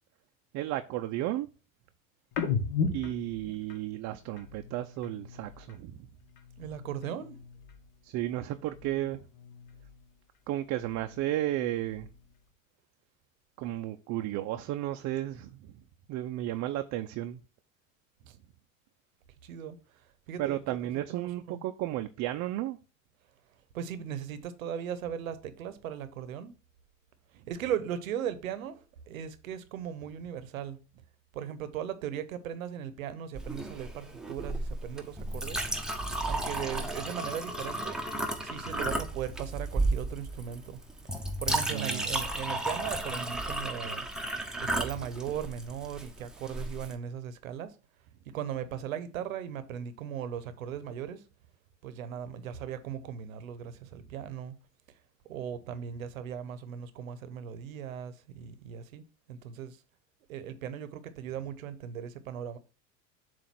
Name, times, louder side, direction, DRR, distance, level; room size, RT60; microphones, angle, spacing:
voice 1, 0.5-1.5 2.9-6.1 8.0-9.2 10.5-12.1 13.6-15.7 16.1-17.4 20.4-22.8 41.7-42.1, right 14 dB, 45° right, 0.5 m, -33 dB
sound 1, 2.3-5.9 6.2-8.0 8.3-10.2 10.5-12.4, left 5 dB, 50° left, 1.3 m, -38 dB
voice 2, 6.6-7.4 18.3-18.4 19.4-19.8 20.3-20.8 21.1-21.6 23.7-26.6 27.5-30.8 31.3-35.7 36.2-38.0 38.4-40.8 41.4-44.1 44.6-47.8 48.3-51.2 51.8-54.6 55.3-59.0 59.3-59.8 60.3-62.6, right 9 dB, 80° right, 0.9 m, -38 dB
Chink clink, 33.3-46.9, right 2 dB, ahead, 0.9 m, -34 dB
7.4 x 2.6 x 5.8 m
hypercardioid pair, 80°, 40 cm